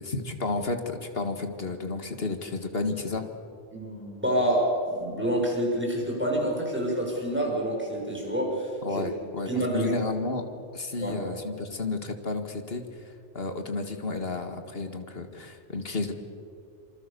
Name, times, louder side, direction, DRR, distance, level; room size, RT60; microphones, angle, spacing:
voice 1, 0.0-3.3 8.8-10.5 10.7-16.1, left 3 dB, 50° left, 6 dB, 2.2 m, -32 dB
voice 2, 3.7-9.0 9.5-9.9 11.0-11.1, right 1 dB, 10° right, -2 dB, 6.6 m, -27 dB
27.0 x 24.5 x 7.0 m, 2.4 s
omnidirectional pair, 1.3 m